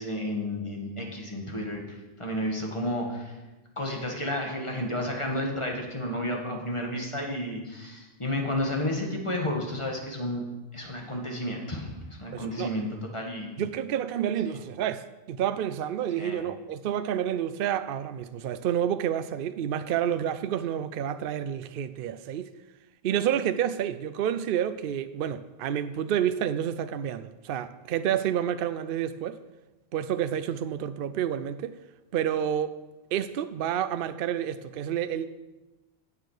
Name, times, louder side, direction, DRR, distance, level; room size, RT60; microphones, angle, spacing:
voice 1, 0.0-3.3 3.8-10.4 10.7-11.9 12.2-12.9 13.1-13.7 14.5-14.6 16.2-16.4, left 1 dB, 25° left, 1.8 m, -31 dB
voice 2, 12.3-12.7 13.6-22.5 23.0-29.4 29.9-31.8 32.1-32.8 33.1-35.4, right 10 dB, 65° right, 0.7 m, -29 dB
16.0 x 6.9 x 4.9 m
omnidirectional pair, 1.1 m